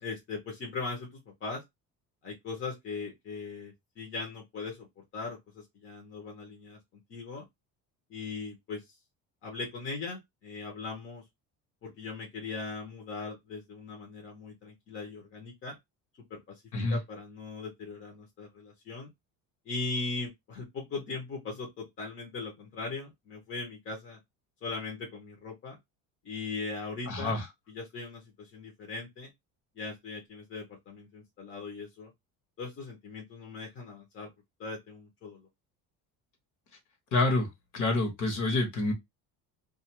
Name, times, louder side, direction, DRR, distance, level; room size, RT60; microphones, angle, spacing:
voice 1, 0.0-1.6 2.2-6.8 7.1-7.4 8.1-8.8 9.4-11.2 11.8-15.7 16.3-16.4 16.9-19.1 19.7-24.2 24.6-25.8 26.2-27.4 27.7-29.3 29.8-32.1 32.6-34.3 34.6-35.5, left 3 dB, 30° left, 0.8 m, -39 dB
voice 2, 27.1-27.4 37.1-37.5 37.7-38.9, left 2 dB, 50° left, 1.1 m, -27 dB
2.4 x 2.4 x 2.9 m
cardioid pair, 160°, 38 cm